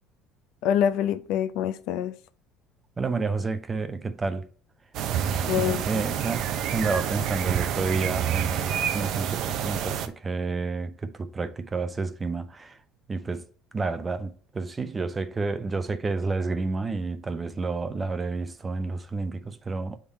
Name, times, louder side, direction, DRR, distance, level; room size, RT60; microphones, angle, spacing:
voice 1, 0.6-2.1 5.5-6.0, left 9 dB, 70° left, 0.5 m, -26 dB
voice 2, 3.0-4.5 5.2-12.8 13.1-13.4 13.7-20.0, right 3 dB, 20° right, 0.6 m, -30 dB
sound 1, 4.9-10.1, right 9 dB, 60° right, 0.6 m, -28 dB
6.8 x 3.7 x 4.1 m
cardioid pair, 120°, 0 cm